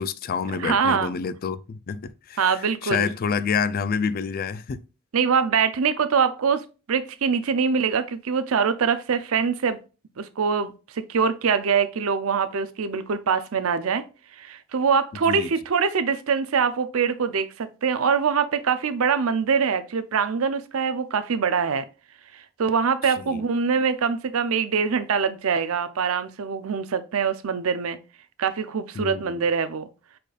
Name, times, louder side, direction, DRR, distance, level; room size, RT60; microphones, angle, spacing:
voice 1, 0.0-4.8 15.3-15.5 23.2-23.4 29.0-29.4, left 6 dB, 45° left, 0.4 m, -28 dB
voice 2, 0.6-1.1 2.4-3.1 5.1-9.8 10.2-14.0 14.4-21.9 22.3-28.0 28.4-29.9, right 6 dB, 90° right, 0.5 m, -24 dB
4.9 x 4.3 x 2.4 m
head